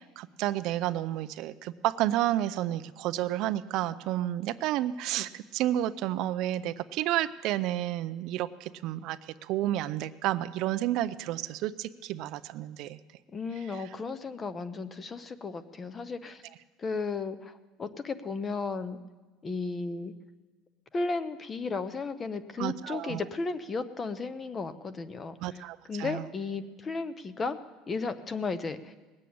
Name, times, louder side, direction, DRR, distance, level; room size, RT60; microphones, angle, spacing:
voice 1, 0.0-13.0 22.6-23.2 25.4-26.2, right 13 dB, 50° right, 12 dB, 0.4 m, -31 dB
voice 2, 13.3-16.4 16.8-19.0 19.4-20.1 20.9-25.6 25.9-27.6 27.9-28.9, left 4 dB, 20° left, 13 dB, 0.6 m, -34 dB
19.5 x 7.6 x 8.5 m, 1.2 s
cardioid pair, 170°, 0 cm